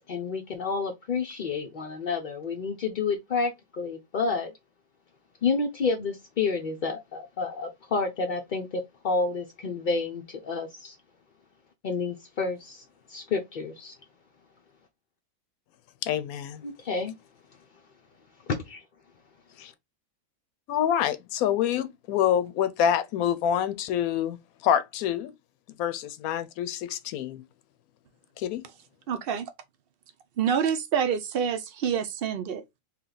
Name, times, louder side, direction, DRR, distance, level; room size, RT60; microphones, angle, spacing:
voice 1, 0.1-4.5 5.4-11.0 11.8-12.8 13.1-13.9 16.6-17.1 18.5-18.8, left 4 dB, 55° left, 0.5 m, -29 dB
voice 2, 16.0-16.6 19.6-19.7 20.7-25.3 25.8-27.4 28.4-28.6, left 9 dB, 80° left, 1.0 m, -26 dB
voice 3, 29.1-29.5 30.4-32.6, right 7 dB, 65° right, 0.5 m, -27 dB
3.2 x 2.9 x 3.8 m
omnidirectional pair, 1.5 m